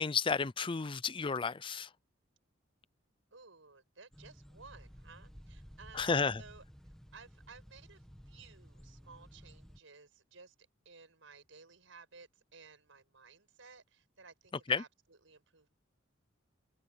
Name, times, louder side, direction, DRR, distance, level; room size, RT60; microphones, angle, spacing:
voice 1, 0.0-1.9 5.9-6.4 14.7-14.8, left 5 dB, 25° left, 0.5 m, -32 dB
voice 2, 3.3-10.5 10.8-15.7, right 4 dB, 80° right, 5.9 m, -57 dB
sound 1, 4.1-9.8, equal, 5° left, 1.9 m, -55 dB
open air
head